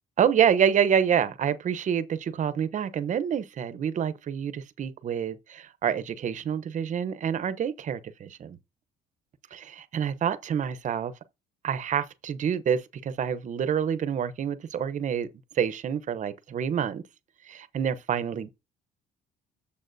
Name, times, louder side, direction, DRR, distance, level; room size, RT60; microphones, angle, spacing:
voice 1, 0.2-8.6 9.5-11.1 11.6-15.3 15.6-17.0 17.5-18.5, right 8 dB, 45° right, 0.9 m, -27 dB
9.0 x 7.2 x 2.7 m
cardioid pair, 110°, 17 cm